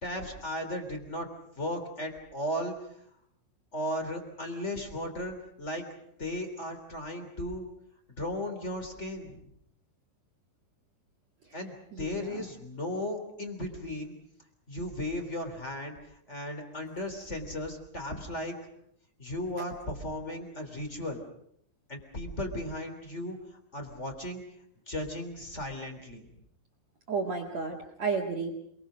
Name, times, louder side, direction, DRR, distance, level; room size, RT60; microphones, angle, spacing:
voice 1, 0.0-1.3 1.5-2.7 3.7-5.8 6.2-7.7 8.2-9.4 11.5-14.1 14.7-16.0 16.3-18.6 19.2-21.2 21.9-23.4 23.7-24.4 24.9-26.2, left 1 dB, 20° left, 6 dB, 2.5 m, -36 dB
voice 2, 11.9-12.5 27.1-28.5, right 5 dB, 55° right, 0 dB, 2.0 m, -32 dB
28.0 x 21.5 x 6.3 m, 0.71 s
omnidirectional pair, 5.9 m